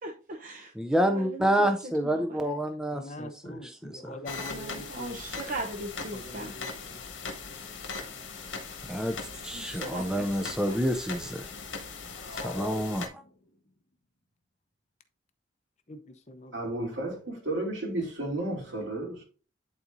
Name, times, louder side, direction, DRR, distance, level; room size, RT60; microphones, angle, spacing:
voice 1, 0.0-0.7 1.0-2.6 4.5-6.5 9.5-10.8, right 2 dB, 45° right, 0.8 m, -39 dB
voice 2, 0.8-3.6 3.8-4.1 8.9-9.2 9.4-11.5 12.4-13.2, equal, 5° right, 0.4 m, -28 dB
voice 3, 2.9-5.2 6.1-7.0 15.9-16.5, left 1 dB, 35° left, 0.7 m, -44 dB
sound 1, 4.3-13.1, left 4 dB, 75° left, 1.6 m, -40 dB
sound 2, 12.0-13.7, left 2 dB, 50° left, 1.5 m, -43 dB
voice 4, 16.5-19.2, right 2 dB, 75° right, 2.8 m, -32 dB
10.5 x 4.2 x 2.6 m
head